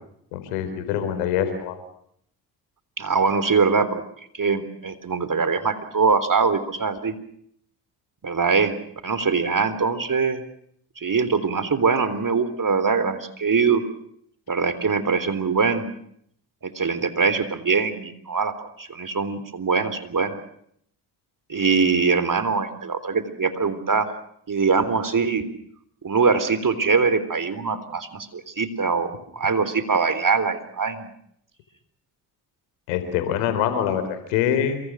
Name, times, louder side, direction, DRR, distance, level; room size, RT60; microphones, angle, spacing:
voice 1, 0.3-1.7 32.9-34.8, left 9 dB, 90° left, 9 dB, 4.2 m, -24 dB
voice 2, 3.0-4.0 4.3-7.1 8.2-8.8 9.0-10.4 11.0-13.8 14.5-15.9 16.6-20.4 21.5-24.1 24.5-25.5 26.0-31.1, right 5 dB, 40° right, 13 dB, 3.6 m, -22 dB
27.5 x 24.0 x 6.4 m, 0.69 s
hypercardioid pair, 50°, 49 cm